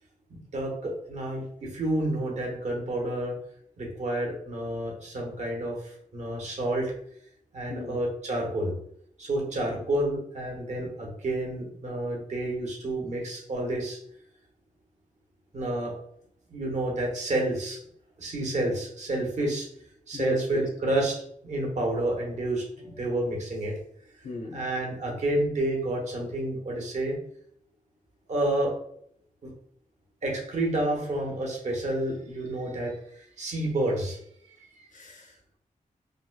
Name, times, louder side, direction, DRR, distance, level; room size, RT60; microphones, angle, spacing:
voice 1, 0.3-3.3 3.8-6.9 7.5-8.7 9.2-14.0 15.5-15.9 16.5-17.8 18.2-19.7 20.1-23.7 24.5-27.2 28.3-28.7 29.4-29.5 30.2-34.2, right 1 dB, 55° right, 1.0 m, -29 dB
voice 2, 7.7-8.0 20.1-20.7 22.9-23.0 24.2-24.7 34.9-35.6, left 1 dB, 65° left, 0.8 m, -35 dB
4.8 x 2.1 x 2.3 m
wide cardioid pair, 140°, 14 cm